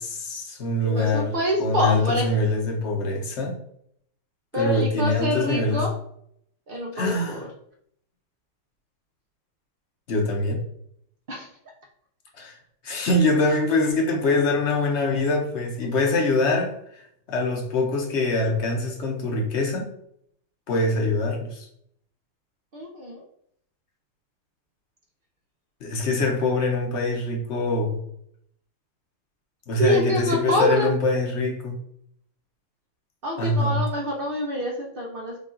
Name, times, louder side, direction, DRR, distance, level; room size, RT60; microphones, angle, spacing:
voice 1, 0.0-1.3 1.6-3.6 4.5-5.8 6.9-7.4 10.1-10.6 12.4-12.6 12.8-16.7 17.3-19.9 20.7-21.7 25.8-28.0 29.7-31.8 33.4-33.8, left 2 dB, 50° left, 1 dB, 0.9 m, -24 dB
voice 2, 0.8-2.3 4.5-5.9 6.7-7.5 11.3-11.5 16.1-16.4 22.7-23.2 29.8-30.9 33.2-35.4, equal, 90° right, -1 dB, 0.4 m, -26 dB
5.3 x 2.5 x 3.7 m, 0.69 s
omnidirectional pair, 2.0 m